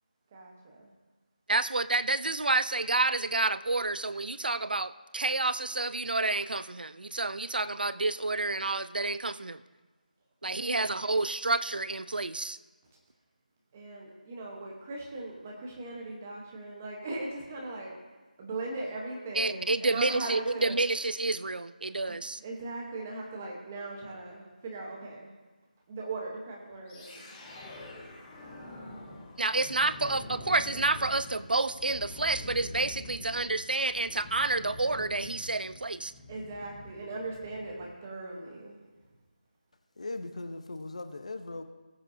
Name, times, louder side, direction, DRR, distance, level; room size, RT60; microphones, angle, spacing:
voice 1, 0.3-0.9 10.4-11.0 13.7-17.9 18.4-20.8 22.1-25.3 25.9-27.9 32.1-32.2 36.3-38.8, right 2 dB, 10° right, -1 dB, 0.9 m, -39 dB
voice 2, 1.5-9.6 10.4-12.6 19.4-22.4 29.4-36.1, right 3 dB, 85° right, 15 dB, 0.5 m, -29 dB
sound 1, 26.9-38.0, left 2 dB, 5° left, 0.5 m, -46 dB
voice 3, 40.0-41.6, left 2 dB, 45° left, 9 dB, 0.7 m, -39 dB
19.0 x 7.8 x 2.6 m, 1.3 s
figure-of-eight pair, 180°, 5 cm